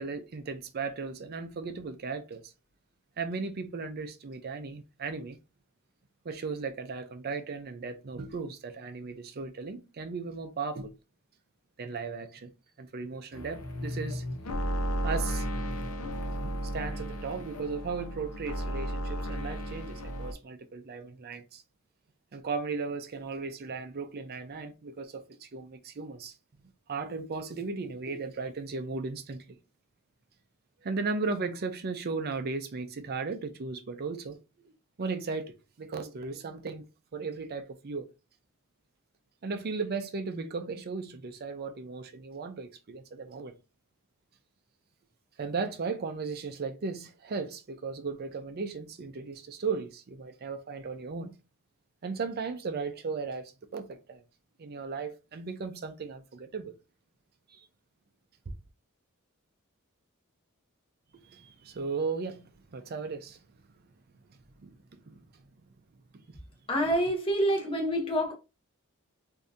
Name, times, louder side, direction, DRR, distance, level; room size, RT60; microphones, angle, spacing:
voice 1, 0.0-2.5 3.2-5.4 6.2-10.9 11.8-12.5 12.8-14.2 15.0-15.5 16.4-21.6 22.3-26.3 26.9-29.6 30.8-34.4 35.0-36.8 37.1-38.1 39.4-43.5 45.4-51.4 52.0-54.2 54.6-56.7 57.5-57.6 61.2-63.4 64.3-65.2 66.3-66.4, right 4 dB, 45° right, 0.5 m, -36 dB
sound 1, 13.3-20.3, equal, 80° left, 0.7 m, -34 dB
voice 2, 66.7-68.3, equal, 25° left, 0.8 m, -27 dB
3.5 x 2.7 x 2.6 m
head